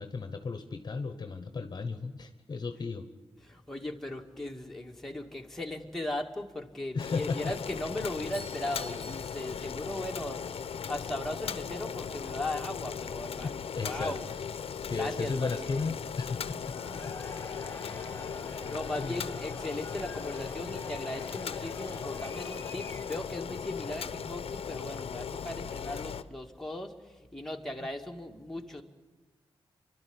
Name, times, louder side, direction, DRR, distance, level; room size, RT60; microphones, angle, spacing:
voice 1, 0.0-3.1 6.9-7.5 13.4-14.2 14.8-16.8 17.1-17.2 18.0-18.3 19.0-19.2, left 4 dB, 45° left, 9 dB, 1.1 m, -35 dB
voice 2, 3.4-14.3 14.9-15.8 16.8-17.1 17.9-18.2 18.5-28.8, left 1 dB, 5° left, 1 dB, 2.1 m, -38 dB
Boiling, 7.0-26.2, left 7 dB, 75° left, 0.8 m, -38 dB
Doorbell, 8.1-10.3, equal, 85° right, 7.1 m, -50 dB
Cheering / Crowd, 16.6-23.4, left 2 dB, 25° left, 2.2 m, -47 dB
28.5 x 12.5 x 9.8 m, 1.2 s
wide cardioid pair, 90°, 10 cm